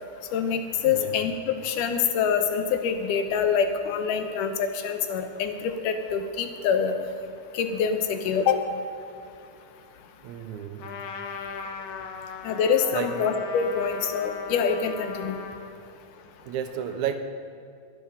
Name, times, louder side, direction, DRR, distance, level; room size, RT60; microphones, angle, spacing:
voice 1, 0.3-7.0 7.5-8.6 12.4-15.4, left 6 dB, 90° left, 7 dB, 2.5 m, -25 dB
voice 2, 0.8-1.2 10.2-10.9 12.9-13.2 16.5-17.2, right 9 dB, 80° right, 7 dB, 2.0 m, -32 dB
Trumpet, 10.8-15.7, left 5 dB, 70° left, 1.7 m, -38 dB
21.5 x 7.2 x 5.6 m, 2.5 s
omnidirectional pair, 3.5 m